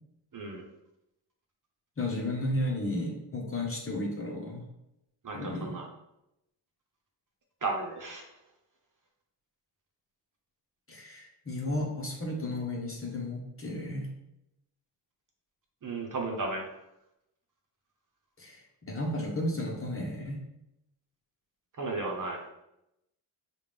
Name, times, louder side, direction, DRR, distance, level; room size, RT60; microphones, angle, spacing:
voice 1, 0.3-0.7 5.2-5.8 7.6-8.3 15.8-16.6 21.8-22.4, right 3 dB, 45° right, 0 dB, 1.1 m, -34 dB
voice 2, 2.0-4.6 5.3-5.8 10.9-14.1 18.4-20.4, left 1 dB, 30° left, -1 dB, 1.1 m, -33 dB
4.8 x 2.6 x 3.5 m, 0.85 s
cardioid pair, 70°, 44 cm